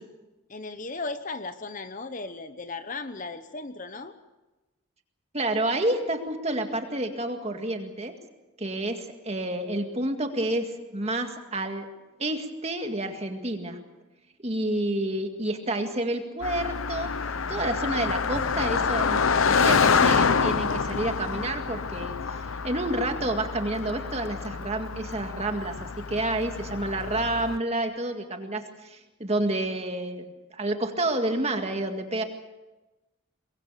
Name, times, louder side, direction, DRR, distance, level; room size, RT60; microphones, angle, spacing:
voice 1, 0.5-4.1, left 3 dB, 35° left, 10 dB, 1.0 m, -36 dB
voice 2, 5.3-8.1 8.6-11.9 12.2-13.8 14.4-17.1 17.5-32.2, right 1 dB, 30° right, 5 dB, 1.9 m, -29 dB
Car passing by, 16.4-27.6, left 5 dB, 70° left, 0.8 m, -27 dB
23.5 x 22.0 x 6.8 m, 1.1 s
head